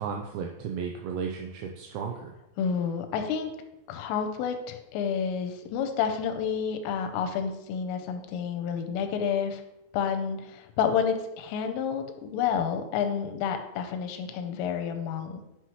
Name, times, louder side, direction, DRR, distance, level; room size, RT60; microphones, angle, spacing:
voice 1, 0.0-2.3, right 6 dB, 85° right, 2 dB, 2.6 m, -34 dB
voice 2, 2.6-3.5 3.9-9.6 9.9-15.4, left 7 dB, 90° left, 7 dB, 3.2 m, -29 dB
9.4 x 5.7 x 3.1 m, 0.90 s
omnidirectional pair, 5.8 m